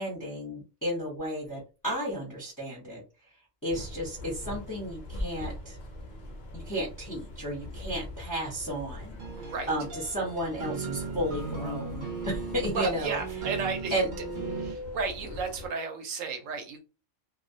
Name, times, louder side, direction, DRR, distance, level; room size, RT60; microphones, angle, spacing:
voice 1, 0.0-3.0 3.6-5.8 6.5-13.2 13.9-14.1, equal, 20° left, -3 dB, 0.6 m, -33 dB
sound 1, 3.7-15.7, left 1 dB, 65° left, 0.4 m, -42 dB
sound 2, 9.2-14.7, right 5 dB, 50° right, 0.6 m, -38 dB
voice 2, 9.4-9.7 12.6-14.0 14.5-16.8, right 4 dB, 70° right, 5 dB, 0.9 m, -33 dB
2.3 x 2.1 x 2.6 m, 0.31 s
omnidirectional pair, 1.5 m